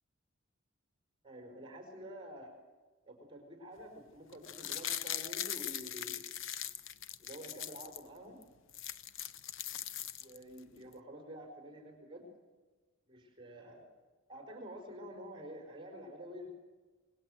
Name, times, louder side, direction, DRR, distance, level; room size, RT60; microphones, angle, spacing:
voice 1, 1.2-2.5 3.1-6.3 7.2-8.4 10.2-12.2 13.1-13.9 14.3-16.5, equal, 25° right, 4 dB, 4.4 m, -49 dB
sound 1, 4.3-8.0 8.4-8.5 8.7-10.6 10.9-11.0, left 10 dB, 65° left, 0.8 m, -40 dB
25.5 x 20.5 x 7.7 m, 1.4 s
head